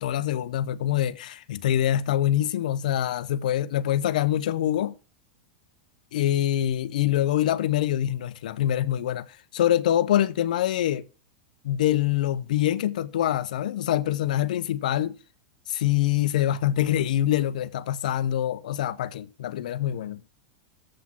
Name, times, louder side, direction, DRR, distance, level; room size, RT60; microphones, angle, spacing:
voice 1, 0.0-4.9 6.1-11.1 11.6-15.2 15.7-20.2, left 12 dB, 80° left, 0.6 m, -25 dB
7.6 x 6.0 x 5.9 m
supercardioid pair, 155°, 4 cm